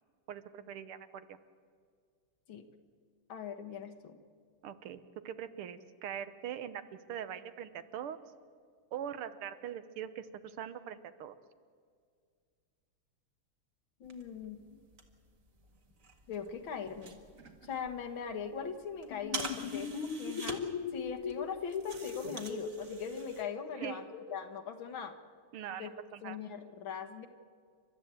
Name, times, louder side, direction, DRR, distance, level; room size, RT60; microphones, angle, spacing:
voice 1, 0.3-1.3 4.6-5.0 5.3-6.8 7.1-8.2 8.9-11.4 23.8-24.0 25.5-26.4, right 9 dB, 85° right, 12 dB, 1.9 m, -42 dB
voice 2, 3.3-4.2 14.0-14.6 16.3-17.2 17.6-20.6 20.9-25.2 25.8-25.9 26.2-27.3, left 6 dB, 65° left, 7 dB, 2.1 m, -41 dB
sound 1, 14.0-23.4, right 4 dB, 40° right, 2.0 m, -47 dB
sound 2, 19.1-24.5, left 6 dB, 85° left, 2.1 m, -39 dB
29.5 x 13.0 x 8.9 m, 2.1 s
omnidirectional pair, 2.4 m